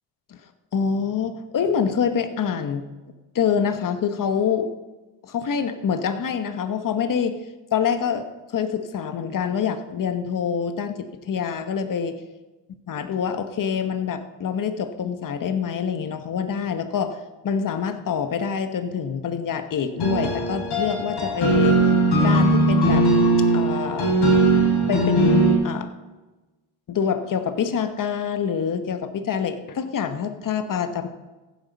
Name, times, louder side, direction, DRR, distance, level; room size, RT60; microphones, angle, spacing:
voice 1, 0.7-2.9 3.3-4.7 5.2-7.4 7.7-8.3 8.5-12.2 12.9-17.2 17.4-21.8 22.2-23.1 23.5-24.2 24.9-25.9 26.9-31.1, left 7 dB, 45° left, 9 dB, 1.2 m, -26 dB
sound 1, 20.0-25.5, right 2 dB, 65° left, 5.8 m, -19 dB
15.5 x 9.7 x 5.4 m, 1.2 s
cardioid pair, 110°, 44 cm